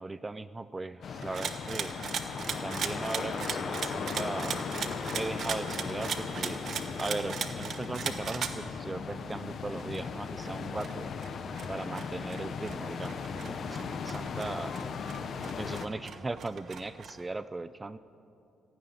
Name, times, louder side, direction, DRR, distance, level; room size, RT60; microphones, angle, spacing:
voice 1, 0.0-2.0 2.6-4.7 5.1-6.6 7.0-11.1 11.7-14.8 15.6-18.0, right 2 dB, 20° right, 15 dB, 0.4 m, -38 dB
sound 1, 1.0-1.6 2.3-6.5 7.8-9.4 10.5-12.2 13.3-15.8, left 7 dB, 90° left, 1.3 m, -53 dB
sound 2, 1.0-15.9, left 5 dB, 55° left, 0.9 m, -37 dB
sound 3, 1.2-8.6 8.9-9.0 9.3-9.4 9.8-17.2, right 6 dB, 55° right, 1.1 m, -38 dB
15.0 x 9.4 x 9.9 m, 2.7 s
cardioid pair, 90°, 0 cm